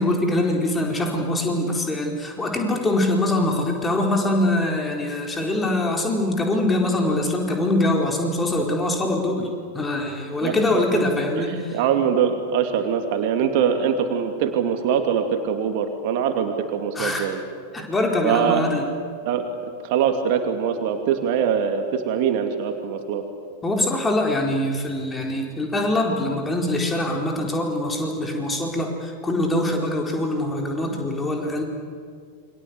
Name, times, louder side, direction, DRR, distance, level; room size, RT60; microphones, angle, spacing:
voice 1, 0.0-9.5 9.7-11.8 16.9-17.3 17.7-18.9 23.6-31.6, left 1 dB, 15° left, 1 dB, 4.4 m, -23 dB
voice 2, 11.3-17.4 18.2-18.7 19.2-19.5 19.8-23.2, right 7 dB, 45° right, 5 dB, 2.7 m, -23 dB
28.5 x 24.5 x 8.2 m, 2.2 s
figure-of-eight pair, 90°, 0 cm